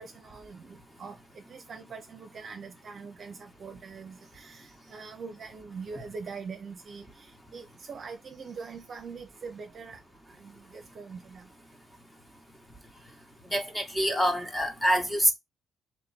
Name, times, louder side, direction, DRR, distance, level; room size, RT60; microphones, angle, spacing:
voice 1, 0.0-10.0 10.4-11.5, right 5 dB, 50° right, 0.8 m, -43 dB
voice 2, 13.5-15.3, equal, 10° left, 1.3 m, -26 dB
3.1 x 3.0 x 4.5 m
cardioid pair, 90°, 0 cm